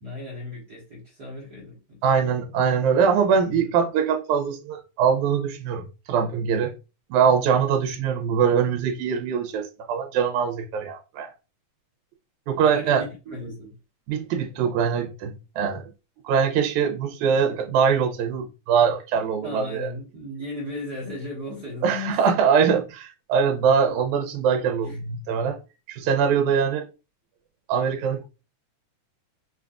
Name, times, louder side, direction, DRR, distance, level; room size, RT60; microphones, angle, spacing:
voice 1, 0.0-2.3 3.5-3.7 12.5-13.7 19.4-22.2 24.8-25.0, left 2 dB, 55° right, 1.0 m, -36 dB
voice 2, 2.0-6.7 7.1-11.3 12.5-13.0 14.1-15.8 16.2-19.9 21.8-25.6 25.9-26.8 27.7-28.2, right 7 dB, 80° right, 1.9 m, -22 dB
5.7 x 2.4 x 2.2 m
omnidirectional pair, 3.6 m